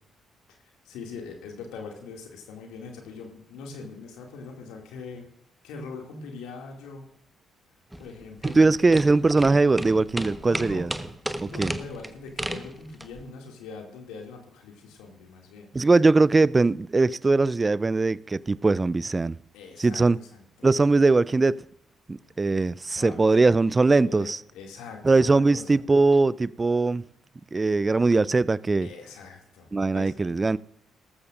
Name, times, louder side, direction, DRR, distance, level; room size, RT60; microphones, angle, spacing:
voice 1, 0.8-5.3 5.6-7.1 8.0-9.0 10.4-10.9 11.4-15.7 19.5-20.7 23.0-23.3 23.8-25.8 28.8-30.2, left 4 dB, 65° left, 2.3 m, -42 dB
sound 1, 7.9-13.2, right 1 dB, 10° right, 1.1 m, -34 dB
voice 2, 8.4-10.9 11.4-11.8 15.7-19.4 19.8-20.2 20.6-21.6 22.1-24.4 25.0-27.0 27.5-28.9 29.7-30.6, right 3 dB, 25° right, 0.4 m, -21 dB
18.5 x 14.5 x 2.5 m
figure-of-eight pair, 45°, 0 cm